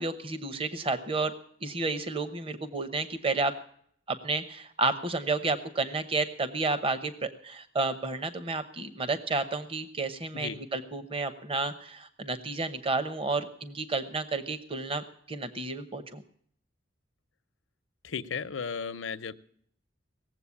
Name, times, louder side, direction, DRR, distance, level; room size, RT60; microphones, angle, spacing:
voice 1, 0.0-1.3 1.6-3.5 4.1-16.2, right 3 dB, 30° right, 11 dB, 0.9 m, -31 dB
voice 2, 18.0-19.3, left 6 dB, 85° left, 13 dB, 0.7 m, -35 dB
18.0 x 7.8 x 8.4 m, 0.62 s
head